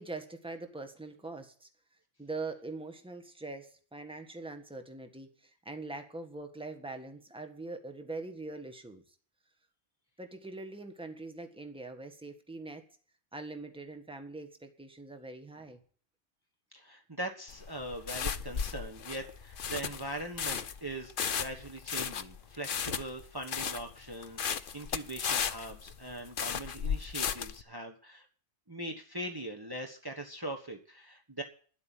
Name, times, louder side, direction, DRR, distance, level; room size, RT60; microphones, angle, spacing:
voice 1, 0.0-1.7 2.2-9.0 10.2-12.9 13.3-15.8, right 3 dB, 5° right, 6 dB, 1.5 m, -43 dB
voice 2, 16.7-28.2 28.7-31.4, right 1 dB, 20° right, 3 dB, 1.4 m, -41 dB
sound 1, 17.5-27.6, left 7 dB, 55° left, 0.9 m, -35 dB
11.0 x 8.4 x 9.2 m, 0.43 s
omnidirectional pair, 1.1 m